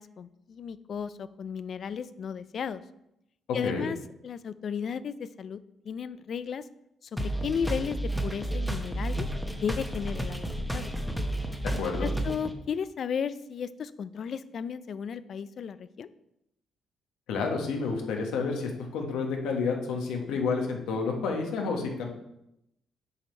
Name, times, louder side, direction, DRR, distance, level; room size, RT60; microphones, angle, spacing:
voice 1, 0.0-2.8 3.5-4.0 4.2-5.6 5.8-6.7 7.1-9.3 9.5-10.9 11.7-16.1, left 7 dB, 55° left, 15 dB, 0.4 m, -34 dB
sound 1, 7.2-12.5, right 1 dB, ahead, 0.9 m, -31 dB
voice 2, 11.6-12.1 17.3-22.1, left 4 dB, 90° left, 2 dB, 1.2 m, -30 dB
7.1 x 5.1 x 4.3 m, 0.83 s
cardioid pair, 90°, 0 cm